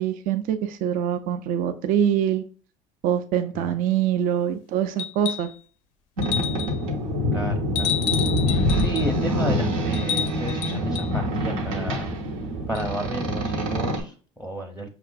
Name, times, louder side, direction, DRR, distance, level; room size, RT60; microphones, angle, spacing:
voice 1, 0.0-2.4 3.0-5.5, right 9 dB, 55° right, 0.5 m, -24 dB
sound 1, 5.0-5.6 6.2-6.8 7.8-9.1 9.9-11.1 12.8-12.9, left 9 dB, 75° left, 0.4 m, -30 dB
Boat Water vehicle, 6.2-14.0, equal, 85° right, 0.9 m, -25 dB
voice 2, 7.3-8.0 8.7-12.1 12.7-14.9, right 1 dB, ahead, 0.6 m, -32 dB
5.8 x 2.4 x 2.2 m
hypercardioid pair, 75°, 16 cm